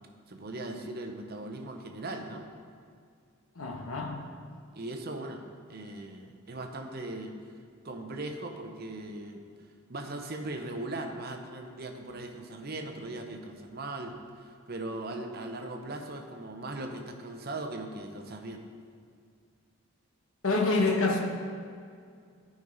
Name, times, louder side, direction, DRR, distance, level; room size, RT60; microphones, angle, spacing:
voice 1, 0.3-2.5 4.7-5.4 5.7-7.4 7.8-9.4 9.9-18.6, right 2 dB, 45° right, 4 dB, 0.7 m, -39 dB
voice 2, 3.5-4.3 20.4-21.2, left 3 dB, 70° left, 1 dB, 1.0 m, -27 dB
11.5 x 5.3 x 4.0 m, 2.2 s
head